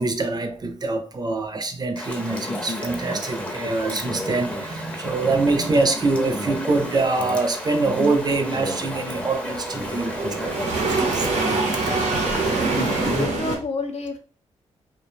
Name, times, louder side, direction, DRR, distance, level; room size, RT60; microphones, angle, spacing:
voice 1, 0.0-11.3 11.7-11.8, right 3 dB, 35° right, 0.5 m, -24 dB
Chatter / Stream, 2.0-13.3, left 1 dB, 10° left, 0.6 m, -31 dB
sound 1, 6.6-13.6, right 3 dB, 90° right, 0.8 m, -26 dB
voice 2, 12.7-14.2, left 4 dB, 65° left, 0.5 m, -31 dB
2.3 x 2.1 x 3.1 m
cardioid pair, 65°, 12 cm